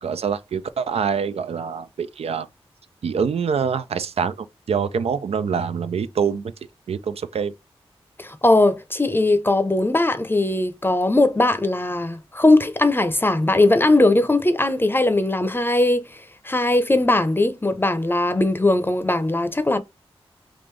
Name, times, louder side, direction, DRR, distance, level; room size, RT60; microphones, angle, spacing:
voice 1, 0.0-2.5 3.0-6.5 6.9-7.5, right 6 dB, 75° right, 0.4 m, -25 dB
voice 2, 8.2-19.8, left 2 dB, 20° left, 0.6 m, -19 dB
3.7 x 2.5 x 3.1 m
cardioid pair, 45°, 10 cm